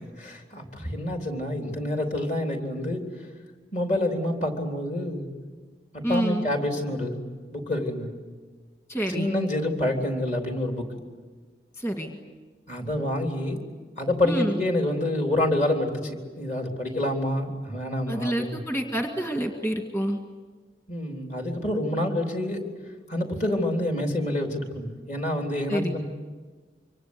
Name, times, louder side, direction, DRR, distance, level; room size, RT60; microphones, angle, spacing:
voice 1, 0.2-3.0 3.7-5.3 5.9-7.2 7.5-8.2 9.1-10.9 12.7-13.6 14.0-18.6 20.9-22.7 23.1-26.0, left 1 dB, 40° left, 2 dB, 3.7 m, -27 dB
voice 2, 6.0-6.5 8.9-9.3 11.8-12.2 14.2-14.6 18.1-20.2 25.7-25.9, right 1 dB, 15° left, 3 dB, 1.8 m, -28 dB
26.0 x 25.0 x 8.3 m, 1.4 s
head